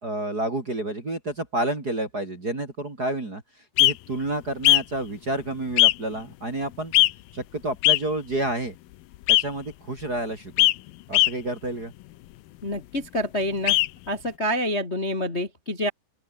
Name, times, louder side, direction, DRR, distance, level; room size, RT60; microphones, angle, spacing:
voice 1, 0.0-3.4 3.8-6.9 7.3-8.7 9.3-10.7 11.1-11.9, right 1 dB, 25° right, 3.2 m, -29 dB
sound 1, 3.8-3.9 4.6-4.8 5.8-5.9 6.9-7.1 7.8-8.0 9.3-9.4 10.6-10.7 11.1-11.3 13.7-13.9, left 17 dB, 75° left, 2.2 m, -17 dB
voice 2, 12.6-13.8 14.1-15.9, equal, 20° left, 2.6 m, -27 dB
open air
omnidirectional pair, 5.0 m